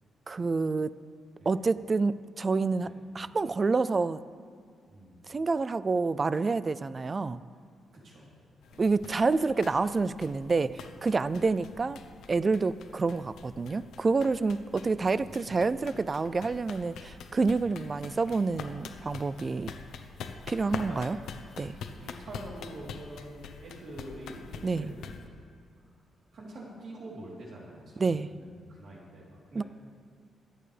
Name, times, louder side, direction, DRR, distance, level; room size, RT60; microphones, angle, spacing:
voice 1, 0.3-0.9 1.5-4.2 5.3-7.4 8.8-12.0 12.3-19.7 20.5-21.2 21.6-21.7 24.6-24.9 28.0-28.3 29.6-29.7, right 4 dB, 25° right, 16 dB, 0.3 m, -28 dB
voice 2, 4.9-5.3 7.9-8.3 8.7-8.9 11.3-11.6 15.2-15.9 17.6-17.9 19.6-19.9 20.9-21.1 22.0-25.3 25.8-25.9 26.3-29.6, right 1 dB, 50° right, -4 dB, 3.4 m, -46 dB
sound 1, 8.6-25.3, left 6 dB, 90° left, 0.8 m, -45 dB
25.5 x 8.9 x 3.3 m, 2.2 s
wide cardioid pair, 165°, 0 cm